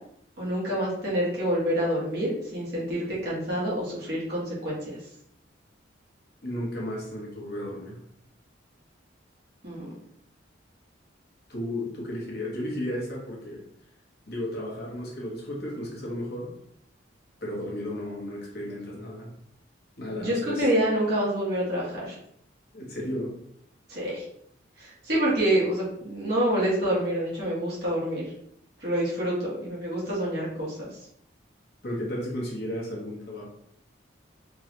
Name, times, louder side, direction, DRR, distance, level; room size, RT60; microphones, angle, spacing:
voice 1, 0.4-4.8 9.6-9.9 20.2-22.1 23.9-24.2 24.8-28.2 28.8-30.9, right 1 dB, 55° right, -7 dB, 1.2 m, -27 dB
voice 2, 6.4-8.0 11.5-13.6 14.3-16.6 17.4-19.3 20.0-20.7 22.7-23.4 31.8-33.5, left 1 dB, 55° left, -3 dB, 1.1 m, -34 dB
3.7 x 2.3 x 2.9 m, 0.71 s
head